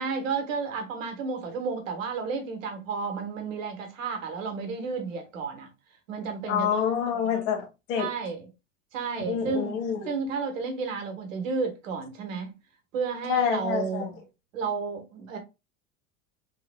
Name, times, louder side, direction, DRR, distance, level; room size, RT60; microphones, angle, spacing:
voice 1, 0.0-5.7 6.1-6.9 8.0-8.5 8.9-9.8 10.1-12.5 12.9-14.1 14.5-15.4, right 5 dB, 75° right, 1.5 m, -32 dB
voice 2, 6.5-8.1 9.3-10.0 13.3-14.1, left 8 dB, 65° left, 1.7 m, -27 dB
4.2 x 3.9 x 2.2 m
hypercardioid pair, 85°, 39 cm